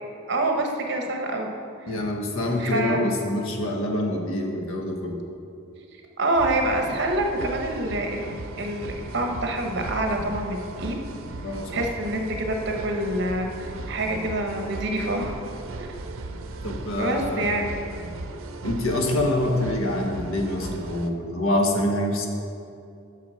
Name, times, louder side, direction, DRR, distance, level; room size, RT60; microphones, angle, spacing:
voice 1, 0.3-1.5 1.8-1.9 2.6-3.0 6.2-8.2 8.6-10.9 11.7-15.4 17.0-17.7, right 1 dB, 55° right, 3 dB, 1.0 m, -26 dB
voice 2, 1.9-5.2 11.4-11.8 16.6-17.5 18.6-22.3, left 1 dB, 80° left, 2 dB, 1.1 m, -26 dB
sound 1, 6.4-21.1, right 2 dB, 80° right, 0.6 m, -37 dB
7.5 x 6.4 x 5.6 m, 2.6 s
head